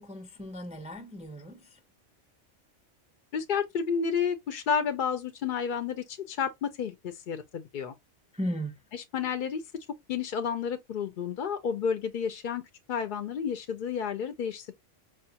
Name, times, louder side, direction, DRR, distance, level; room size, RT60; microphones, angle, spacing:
voice 1, 0.0-1.8 8.3-8.8, equal, 10° right, 0.4 m, -36 dB
voice 2, 3.3-7.9 8.9-9.6 10.1-12.6 12.9-14.7, left 7 dB, 60° left, 0.5 m, -31 dB
4.9 x 2.3 x 2.7 m
omnidirectional pair, 1.2 m